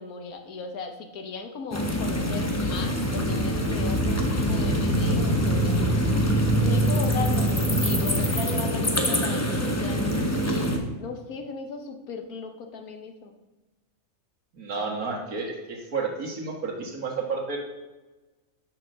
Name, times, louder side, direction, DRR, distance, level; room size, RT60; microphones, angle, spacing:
voice 1, 0.0-7.5 7.8-10.1 10.4-10.7 11.0-13.3, left 4 dB, 90° left, 5 dB, 1.5 m, -37 dB
sound 1, 1.7-10.8, equal, 15° left, 0.7 m, -24 dB
voice 2, 14.5-17.6, right 4 dB, 85° right, 0 dB, 2.0 m, -31 dB
6.7 x 5.8 x 6.4 m, 1.1 s
omnidirectional pair, 1.5 m